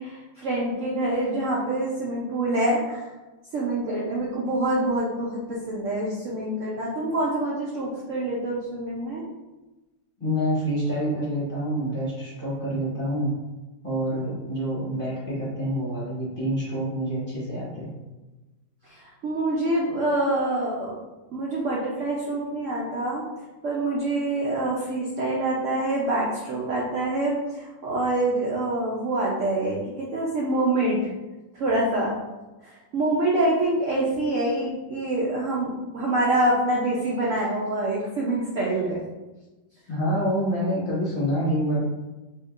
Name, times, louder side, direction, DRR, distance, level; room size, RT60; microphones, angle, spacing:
voice 1, 0.0-3.1 3.5-9.2 18.9-20.9 21.3-23.2 23.6-31.1 31.5-32.2 32.6-39.0, right 1 dB, 70° right, -4 dB, 0.7 m, -26 dB
voice 2, 10.2-13.3 13.8-17.9 39.9-41.8, equal, 35° left, -8 dB, 1.0 m, -27 dB
4.3 x 2.9 x 2.4 m, 1.1 s
omnidirectional pair, 2.0 m